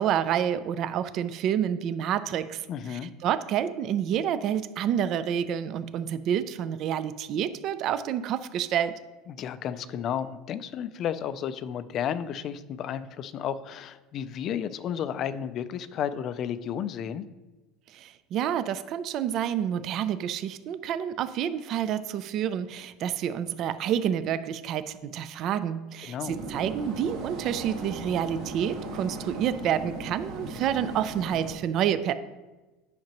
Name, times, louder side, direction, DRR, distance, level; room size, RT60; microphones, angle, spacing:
voice 1, 0.0-9.0 17.9-32.1, right 9 dB, 45° right, 13 dB, 0.4 m, -28 dB
voice 2, 2.7-3.1 9.3-17.2 26.1-26.4, left 9 dB, 40° left, 14 dB, 0.4 m, -32 dB
sound 1, 26.2-31.5, right 2 dB, 85° right, 2.3 m, -38 dB
10.0 x 5.8 x 3.0 m, 1.2 s
cardioid pair, 150°, 0 cm